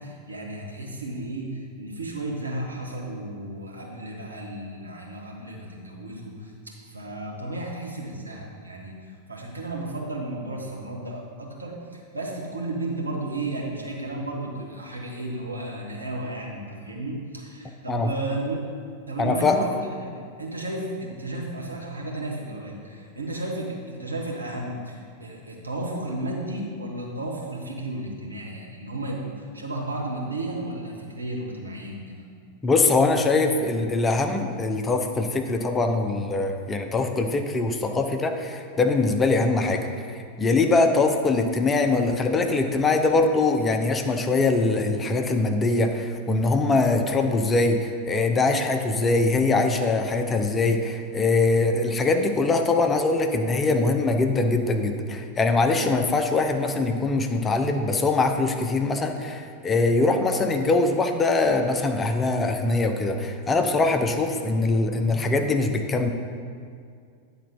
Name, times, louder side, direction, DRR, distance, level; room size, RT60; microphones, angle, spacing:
voice 1, 0.0-18.6 19.1-19.7 20.0-32.2, right 1 dB, 80° right, -2 dB, 1.3 m, -33 dB
voice 2, 19.2-19.6 32.6-39.9 40.4-66.1, left 3 dB, 20° left, 5 dB, 0.6 m, -22 dB
9.4 x 4.0 x 5.4 m, 2.3 s
figure-of-eight pair, 90°, 0 cm